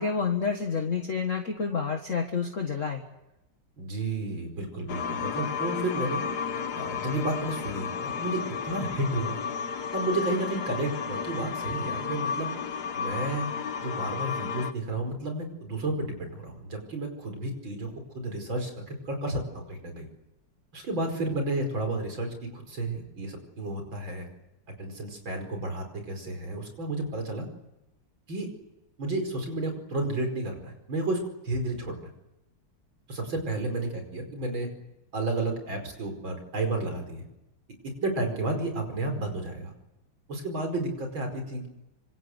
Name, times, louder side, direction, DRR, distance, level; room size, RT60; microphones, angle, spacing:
voice 1, 0.0-3.0, left 5 dB, 40° left, 4 dB, 1.8 m, -29 dB
voice 2, 3.8-6.3 6.8-9.4 9.9-12.5 12.9-13.5 13.8-20.1 20.7-24.3 24.7-27.5 28.3-28.5 29.0-31.2 31.4-32.1 33.1-34.7 35.1-37.2 37.8-39.7 40.3-41.7, right 2 dB, 70° right, 5 dB, 5.9 m, -32 dB
sound 1, 4.9-14.7, left 6 dB, 55° left, 1.6 m, -33 dB
25.5 x 25.5 x 8.1 m, 0.93 s
omnidirectional pair, 2.2 m